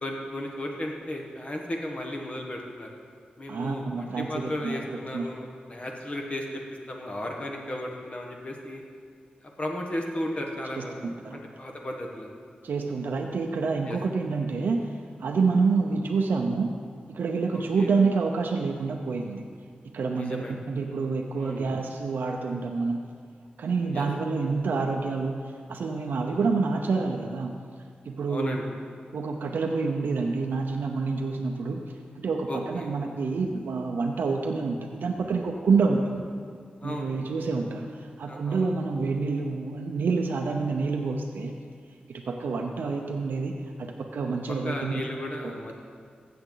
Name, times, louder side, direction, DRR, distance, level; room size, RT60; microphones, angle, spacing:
voice 1, 0.0-2.9 3.4-6.6 6.9-8.8 9.4-11.0 11.3-12.3 13.9-14.0 17.5-17.9 20.1-20.6 21.3-21.7 23.9-24.1 28.3-28.6 32.5-32.9 36.8-37.2 38.3-38.7 44.6-45.7, left 1 dB, 40° left, 1 dB, 1.3 m, -35 dB
voice 2, 3.5-4.8 5.1-5.2 10.8-11.4 12.6-14.9 15.2-16.7 17.1-19.4 19.9-23.0 23.6-27.5 28.0-28.6 29.1-31.8 32.2-36.2 36.8-41.5 42.1-45.0 45.4-45.5, right 4 dB, 90° right, 2 dB, 0.7 m, -28 dB
14.5 x 7.8 x 3.9 m, 2.1 s
wide cardioid pair, 80°, 3 cm